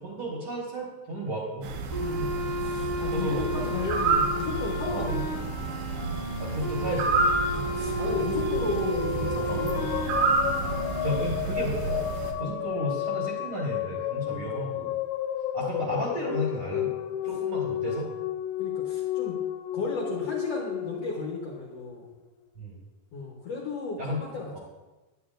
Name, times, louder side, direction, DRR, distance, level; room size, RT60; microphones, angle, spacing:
voice 1, 0.0-1.7 3.1-3.8 4.9-5.1 6.4-7.2 9.5-9.6 11.0-12.0 12.4-14.9 15.5-16.9 17.2-18.1 22.6-22.7 24.0-24.2 24.5-24.6, equal, 50° right, -4 dB, 1.8 m, -33 dB
sound 1, 1.6-12.3, right 4 dB, 90° right, 2.5 m, -29 dB
sound 2, 1.9-11.2, equal, 15° left, 0.9 m, -33 dB
voice 2, 2.0-5.5 7.5-10.2 12.4-12.7 14.3-14.7 18.6-19.4 19.7-22.0 23.1-24.6, left 3 dB, 60° left, -3 dB, 1.7 m, -35 dB
sound 3, 7.7-22.1, left 12 dB, 85° left, 2.2 m, -32 dB
9.7 x 9.5 x 2.5 m, 1.1 s
omnidirectional pair, 4.0 m